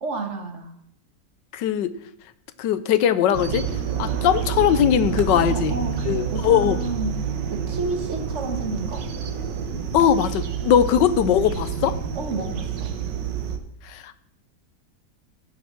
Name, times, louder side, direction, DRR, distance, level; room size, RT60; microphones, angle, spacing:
voice 1, 0.0-0.7 5.3-9.1 12.2-12.9, right 3 dB, 45° right, 5 dB, 1.8 m, -31 dB
voice 2, 1.5-1.9 2.6-3.6 4.0-5.7 6.1-6.8 9.9-12.0 13.9-14.2, left 9 dB, 90° left, 14 dB, 1.4 m, -20 dB
sound 1, 3.3-13.6, right 7 dB, 90° right, 1.7 m, -28 dB
15.5 x 6.3 x 6.0 m, 0.71 s
omnidirectional pair, 1.8 m